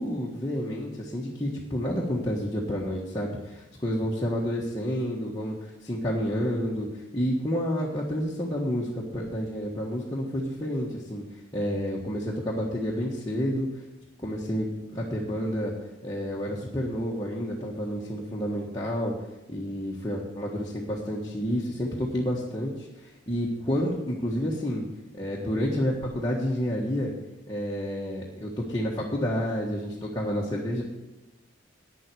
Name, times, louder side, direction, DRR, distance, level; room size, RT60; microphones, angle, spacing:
voice 1, 0.0-11.2 11.5-13.7 14.2-15.7 16.0-19.1 19.5-24.8 25.1-27.1 27.5-30.8, equal, 20° left, -4 dB, 1.4 m, -29 dB
9.3 x 7.7 x 9.1 m, 1.1 s
head